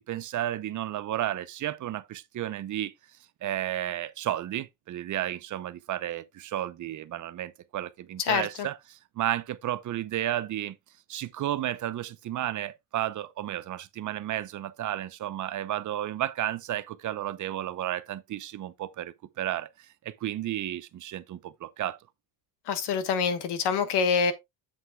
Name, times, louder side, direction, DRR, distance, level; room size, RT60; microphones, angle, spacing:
voice 1, 0.1-2.9 3.4-10.8 11.1-22.0, right 12 dB, 45° right, 0.8 m, -32 dB
voice 2, 8.3-8.7 22.7-24.3, left 6 dB, 65° left, 1.6 m, -26 dB
8.0 x 7.9 x 2.3 m
cardioid pair, 120°, 43 cm